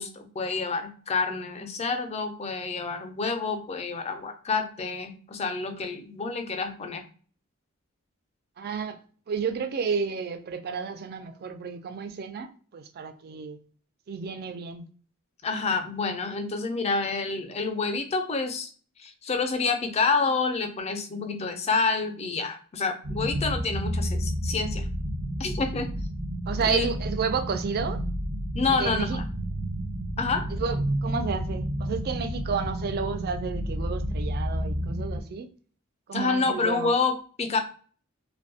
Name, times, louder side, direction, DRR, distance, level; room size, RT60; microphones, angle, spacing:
voice 1, 0.0-7.0 15.4-18.7 19.0-24.9 25.4-25.9 26.7-26.9 28.5-29.2 30.2-30.5 36.1-37.6, left 4 dB, 30° left, 0.4 m, -28 dB
voice 2, 8.6-13.6 14.1-14.9 26.5-28.0 28.7-29.2 30.5-35.5 36.1-36.9, right 5 dB, 45° right, 0.4 m, -31 dB
sound 1, 23.0-35.2, equal, 70° right, 0.8 m, -31 dB
2.6 x 2.1 x 2.7 m
head